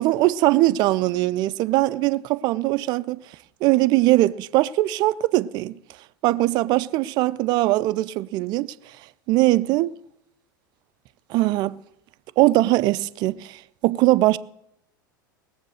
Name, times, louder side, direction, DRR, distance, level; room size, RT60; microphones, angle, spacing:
voice 1, 0.0-3.2 3.6-5.8 6.2-8.7 9.3-9.9 11.3-11.8 12.4-14.4, right 17 dB, 40° right, 0.5 m, -21 dB
19.5 x 7.3 x 6.5 m
figure-of-eight pair, 80°, 11 cm